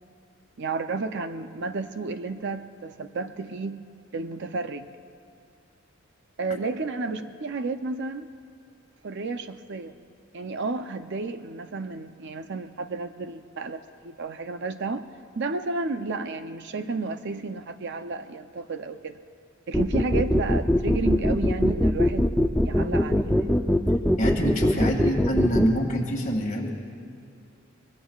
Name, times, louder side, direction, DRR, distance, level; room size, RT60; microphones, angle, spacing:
voice 1, 0.6-4.9 6.4-8.3 9.0-9.9 10.3-15.0 15.4-19.2 19.7-22.3 22.6-23.6 25.0-25.1, right 3 dB, 55° right, 9 dB, 0.6 m, -32 dB
sound 1, 19.7-25.7, left 1 dB, 5° left, 0.5 m, -21 dB
voice 2, 24.2-26.7, equal, 40° left, 0 dB, 2.1 m, -26 dB
23.0 x 22.0 x 2.4 m, 2.4 s
head